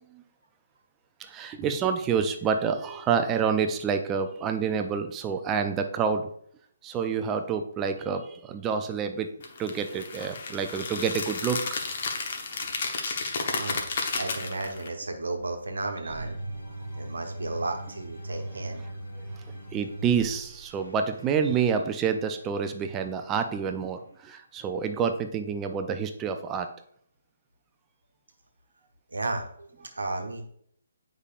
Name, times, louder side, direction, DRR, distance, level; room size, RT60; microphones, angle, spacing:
voice 1, 1.2-6.3 6.8-9.3 9.6-11.6 19.7-26.7, right 6 dB, 15° right, 6 dB, 0.4 m, -28 dB
sound 1, 9.4-14.9, left 4 dB, 45° left, 0.9 m, -32 dB
voice 2, 13.1-13.9 14.1-16.4 17.0-18.8 29.1-30.4, right 2 dB, 75° right, 3 dB, 1.0 m, -34 dB
sound 2, 16.1-22.4, right 1 dB, 80° left, 2.3 m, -40 dB
8.1 x 5.1 x 2.4 m, 0.66 s
figure-of-eight pair, 140°, 0 cm